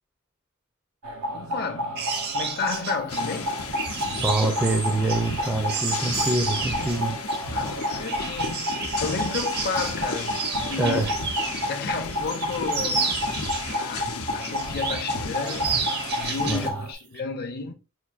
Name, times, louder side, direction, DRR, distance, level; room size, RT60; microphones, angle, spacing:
sound 1, 1.0-16.9, equal, 90° right, 0.6 m, -31 dB
voice 1, 1.3-3.7 7.5-11.0 11.7-13.2 13.6-17.7, left 4 dB, 45° left, 0.6 m, -33 dB
sound 2, 1.9-11.8 12.1-14.0 14.4-15.1 15.4-16.7 17.0-17.2, right 5 dB, 50° right, 0.7 m, -32 dB
sound 3, 3.1-16.7, left 4 dB, 85° left, 0.7 m, -34 dB
voice 2, 4.2-7.1 10.8-11.1 16.5-16.7, right 2 dB, 10° right, 0.4 m, -25 dB
5.9 x 2.5 x 2.4 m
head